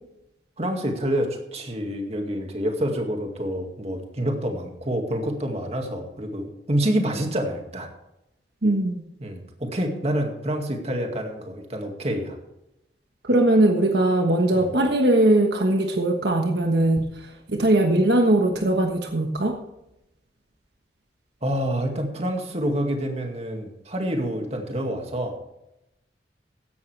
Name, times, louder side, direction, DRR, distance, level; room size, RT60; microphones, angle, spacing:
voice 1, 0.6-7.9 9.2-12.4 14.5-14.7 21.4-25.4, equal, 35° right, 3 dB, 2.1 m, -27 dB
voice 2, 8.6-9.0 13.2-19.6, right 1 dB, 70° right, 3 dB, 1.3 m, -20 dB
15.5 x 11.0 x 3.4 m, 0.87 s
head